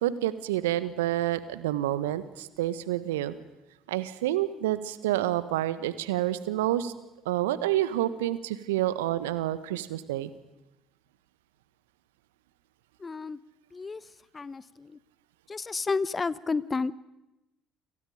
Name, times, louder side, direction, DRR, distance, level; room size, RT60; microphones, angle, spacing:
voice 1, 0.0-3.3 3.9-6.9 7.2-10.3, right 13 dB, 75° right, 14 dB, 1.5 m, -28 dB
voice 2, 13.0-13.4 13.7-14.0 14.3-15.0 15.5-16.9, left 4 dB, 25° left, 18 dB, 1.1 m, -31 dB
30.0 x 27.5 x 5.2 m, 0.97 s
figure-of-eight pair, 55°, 0 cm